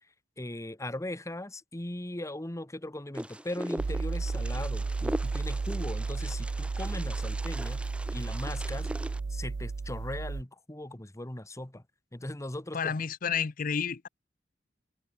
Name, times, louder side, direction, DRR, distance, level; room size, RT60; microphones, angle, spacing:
voice 1, 0.4-7.8 8.1-8.9 9.3-11.8 12.1-12.9, left 1 dB, 15° left, 1.2 m, -39 dB
Wind, 3.1-9.2, equal, 5° right, 2.3 m, -40 dB
sound 1, 3.8-10.4, right 4 dB, 75° right, 0.5 m, -33 dB
voice 2, 12.7-14.1, left 6 dB, 50° left, 0.6 m, -30 dB
head